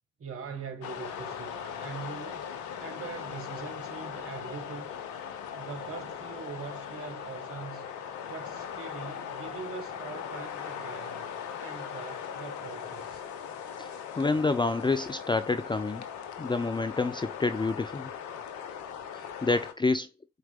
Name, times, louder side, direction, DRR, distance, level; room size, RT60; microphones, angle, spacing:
voice 1, 0.2-2.5 2.8-4.9 5.5-7.9 8.3-13.2, right 5 dB, 45° right, 1.7 m, -42 dB
sound 1, 0.8-19.7, left 8 dB, 60° left, 1.1 m, -39 dB
voice 2, 13.8-16.0 16.4-18.1 19.1-20.1, left 3 dB, 15° left, 0.6 m, -28 dB
12.0 x 4.6 x 2.4 m
figure-of-eight pair, 45°, 33 cm